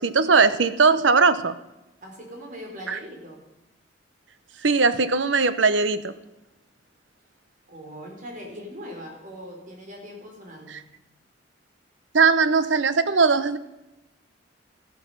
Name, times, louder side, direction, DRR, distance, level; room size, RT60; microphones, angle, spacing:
voice 1, 0.0-1.5 2.9-3.0 4.6-6.1 12.1-13.6, right 4 dB, 90° right, 13 dB, 0.9 m, -19 dB
voice 2, 2.0-3.5 7.7-10.9, equal, 45° right, 1 dB, 3.8 m, -40 dB
14.0 x 12.0 x 5.4 m, 0.97 s
head